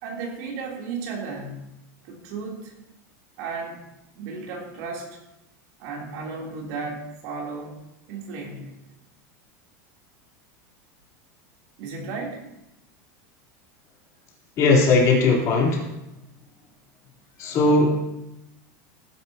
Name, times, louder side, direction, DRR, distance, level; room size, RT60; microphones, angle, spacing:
voice 1, 0.0-1.7 2.0-2.7 3.4-3.8 4.1-5.2 5.8-7.8 8.1-8.8 11.8-12.4, right 4 dB, 60° right, -1 dB, 3.4 m, -34 dB
voice 2, 14.6-15.8 17.4-18.0, left 3 dB, 40° left, -2 dB, 3.6 m, -18 dB
18.0 x 10.5 x 2.9 m, 0.90 s
supercardioid pair, 155°, 9 cm